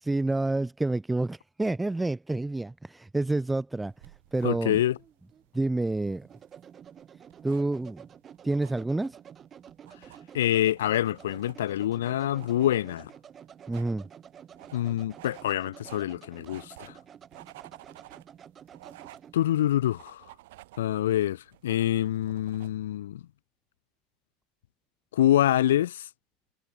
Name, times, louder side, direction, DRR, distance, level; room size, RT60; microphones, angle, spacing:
voice 1, 0.0-3.9 4.3-4.8 5.5-6.3 7.4-8.0 8.4-9.2 13.7-14.1, right 2 dB, 10° right, 1.9 m, -28 dB
sound 1, 3.9-22.7, right 18 dB, 65° right, 6.3 m, -54 dB
Alban-tubes de colle, 4.0-19.4, right 8 dB, 30° right, 5.0 m, -50 dB
voice 2, 4.4-5.0 10.3-13.1 14.7-16.9 19.3-20.2 20.8-23.2 25.1-26.1, left 12 dB, 70° left, 0.8 m, -26 dB
figure-of-eight pair, 75°, 0 cm